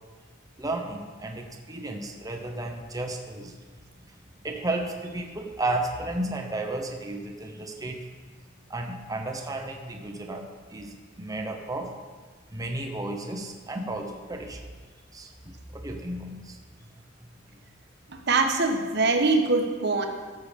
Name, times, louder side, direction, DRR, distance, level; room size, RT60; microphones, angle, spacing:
voice 1, 0.6-3.5 4.4-8.1 8.7-11.9 12.5-14.6 15.1-16.6 16.8-16.9 17.2-17.3, right 2 dB, 20° right, 3 dB, 0.9 m, -33 dB
voice 2, 18.3-20.1, right 3 dB, 60° right, 4 dB, 1.2 m, -23 dB
13.0 x 6.8 x 5.2 m, 1.5 s
head